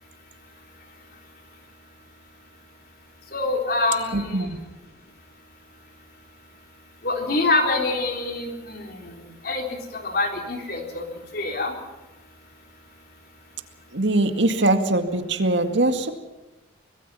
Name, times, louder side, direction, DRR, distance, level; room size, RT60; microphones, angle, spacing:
voice 1, 3.3-4.5 7.0-9.1 9.4-9.6 9.9-11.0 11.3-11.7, left 2 dB, 50° left, 2 dB, 3.9 m, -25 dB
voice 2, 4.1-4.6 13.9-16.1, right 2 dB, 75° right, 6 dB, 2.1 m, -22 dB
25.0 x 21.0 x 5.7 m, 1.1 s
head